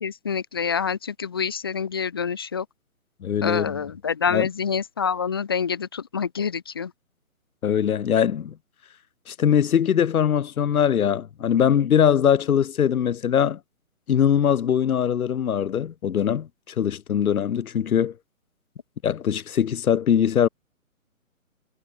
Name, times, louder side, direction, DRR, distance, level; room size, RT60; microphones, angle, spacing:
voice 1, 0.0-2.7 3.4-6.9, left 6 dB, 20° left, 0.6 m, -27 dB
voice 2, 3.2-3.8 4.3-4.5 7.6-8.5 9.3-13.6 14.1-18.1 19.0-20.5, left 8 dB, 85° left, 0.6 m, -21 dB
figure-of-eight pair, 145°, 42 cm